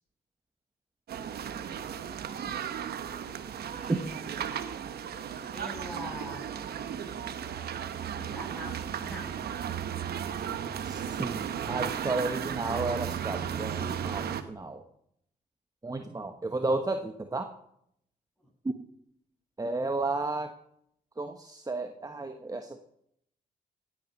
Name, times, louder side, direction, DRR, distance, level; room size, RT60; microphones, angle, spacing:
sound 1, 1.1-14.4, right 8 dB, 70° right, 1.0 m, -35 dB
voice 1, 3.6-4.3 5.5-6.5 8.2-9.4 18.4-18.5, equal, 5° left, 0 dB, 7.5 m, -43 dB
voice 2, 10.8-14.8 15.8-17.5 18.6-18.8 19.6-20.5 21.2-22.8, right 2 dB, 20° right, 6 dB, 1.2 m, -33 dB
17.5 x 9.0 x 5.4 m, 0.74 s
supercardioid pair, 50°, 17 cm